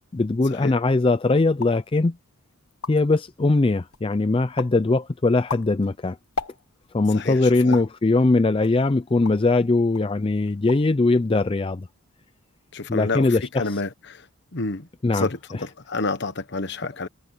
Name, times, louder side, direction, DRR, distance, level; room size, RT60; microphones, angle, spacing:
voice 1, 0.1-2.2 2.9-6.2 6.9-11.9 12.9-13.6 15.0-15.3, left 3 dB, 25° left, 0.4 m, -21 dB
sound 1, 1.5-1.9 2.4-2.5 2.7-3.2 3.7-4.1 4.6-4.8 5.3-6.9 7.7-8.0 8.6-9.5 9.9-10.1 10.5-11.0 11.2-11.7, left 5 dB, 85° left, 1.4 m, -36 dB
voice 2, 7.1-7.8 12.7-14.3 14.5-14.9 15.1-17.1, left 3 dB, 50° left, 1.2 m, -29 dB
head